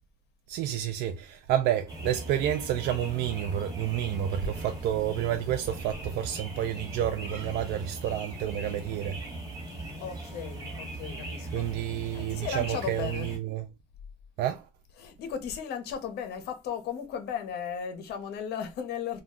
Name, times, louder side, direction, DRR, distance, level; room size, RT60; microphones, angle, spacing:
voice 1, 0.5-9.2 11.5-13.7 14.4-14.7, right 11 dB, 80° right, 0.4 m, -30 dB
sound 1, 1.9-13.4, right 2 dB, 20° right, 1.2 m, -39 dB
voice 2, 9.7-11.7 12.1-13.4 14.9-19.2, left 7 dB, 75° left, 0.7 m, -36 dB
2.3 x 2.2 x 3.6 m
cardioid pair, 110°, 17 cm